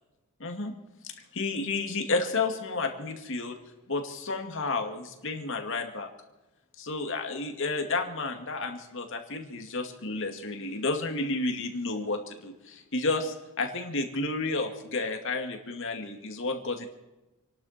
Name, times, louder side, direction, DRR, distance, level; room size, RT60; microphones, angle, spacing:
voice 1, 0.4-0.7 1.0-3.6 3.9-6.1 6.8-16.9, left 3 dB, 60° left, 4 dB, 2.2 m, -31 dB
28.5 x 11.5 x 4.4 m, 1.1 s
head